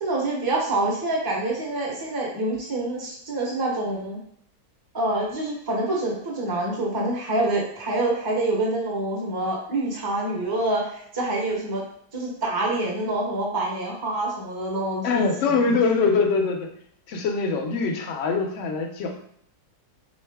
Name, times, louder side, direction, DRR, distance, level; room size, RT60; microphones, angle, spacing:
voice 1, 0.0-4.2 4.9-11.8 12.1-15.3, right 2 dB, 20° right, -2 dB, 0.7 m, -26 dB
voice 2, 15.0-16.7 17.1-19.2, left 4 dB, 65° left, 3 dB, 0.8 m, -23 dB
3.7 x 2.7 x 3.4 m, 0.69 s
omnidirectional pair, 1.6 m